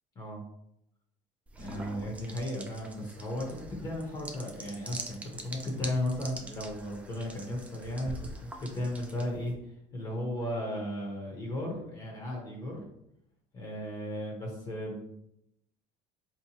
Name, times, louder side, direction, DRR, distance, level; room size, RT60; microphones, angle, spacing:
sound 1, 1.5-9.5, right 2 dB, 10° right, 0.3 m, -45 dB
voice 1, 1.6-12.8 13.5-15.1, left 1 dB, 25° left, -1 dB, 0.7 m, -35 dB
4.3 x 2.9 x 2.8 m, 0.79 s
cardioid pair, 155°, 16 cm